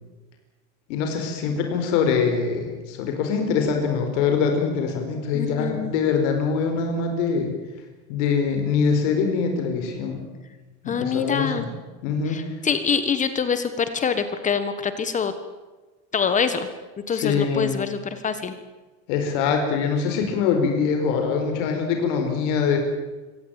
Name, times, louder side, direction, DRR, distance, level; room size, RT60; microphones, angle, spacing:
voice 1, 0.9-7.5 8.1-10.3 10.8-11.7 12.0-12.4 17.1-17.7 19.1-22.8, left 5 dB, 80° left, 4 dB, 4.7 m, -23 dB
voice 2, 5.3-5.9 10.9-11.6 12.3-15.3 16.1-16.7 17.1-18.5, left 6 dB, 20° left, 11 dB, 1.4 m, -25 dB
24.5 x 17.5 x 9.0 m, 1.2 s
cardioid pair, 165°, 35 cm